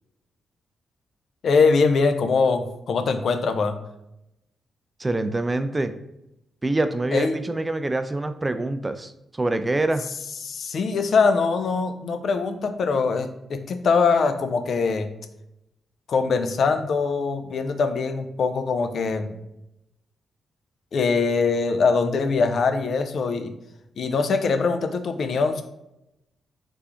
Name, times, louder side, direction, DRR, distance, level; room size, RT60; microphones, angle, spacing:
voice 1, 1.4-3.8 7.1-7.3 10.4-15.1 16.1-19.4 20.9-23.5 24.0-25.6, left 4 dB, 60° left, 7 dB, 0.4 m, -22 dB
voice 2, 5.0-5.9 6.6-10.1, right 2 dB, 25° right, 10 dB, 0.3 m, -25 dB
3.5 x 3.2 x 2.5 m, 0.86 s
hypercardioid pair, 40°, 0 cm